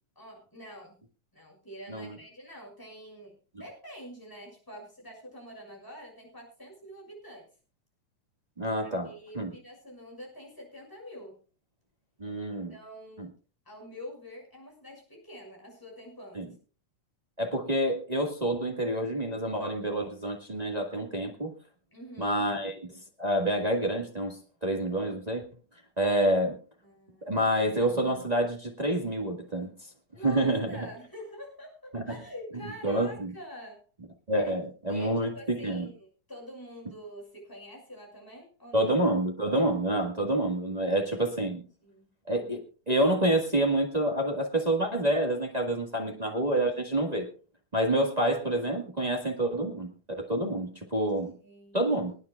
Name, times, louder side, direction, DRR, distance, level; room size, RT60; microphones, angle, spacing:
voice 1, 0.1-1.0 1.3-7.5 8.8-11.4 12.7-13.3 13.6-16.6 21.9-22.4 26.8-27.4 30.1-33.9 34.4-34.6 34.9-38.9 40.8-41.3 41.8-42.1 46.1-46.2 51.4-51.8, equal, 5° left, -2 dB, 6.3 m, -46 dB
voice 2, 8.6-9.1 9.3-9.5 12.2-12.7 13.2-13.3 16.3-16.5 17.4-21.5 22.2-22.8 23.2-25.4 26.0-26.6 27.3-29.7 30.2-30.9 31.9-32.2 32.8-33.3 34.3-35.9 38.7-41.6 42.3-47.3 47.7-49.9 50.2-51.3 51.7-52.2, right 1 dB, 25° right, 0 dB, 0.9 m, -28 dB
26.5 x 9.7 x 2.3 m, 0.36 s
omnidirectional pair, 3.5 m